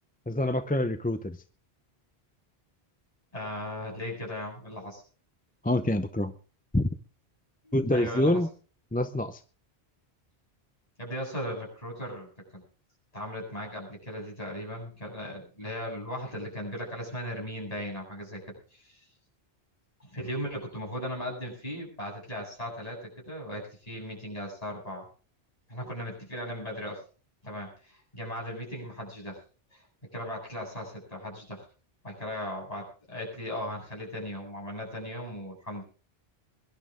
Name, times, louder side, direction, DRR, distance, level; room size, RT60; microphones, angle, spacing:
voice 1, 0.3-1.4 5.6-6.3 6.7-6.9 7.7-8.5 8.9-9.4, left 1 dB, 10° left, 9 dB, 0.6 m, -26 dB
voice 2, 3.3-5.0 7.6-8.4 11.0-12.6 13.1-18.4 18.8-18.9 20.0-23.0 23.3-25.0 25.7-27.0 27.4-29.4 29.7-29.8 30.1-31.6 32.0-35.8, equal, 35° left, -1 dB, 8.1 m, -37 dB
23.0 x 11.5 x 3.8 m, 0.39 s
omnidirectional pair, 1.1 m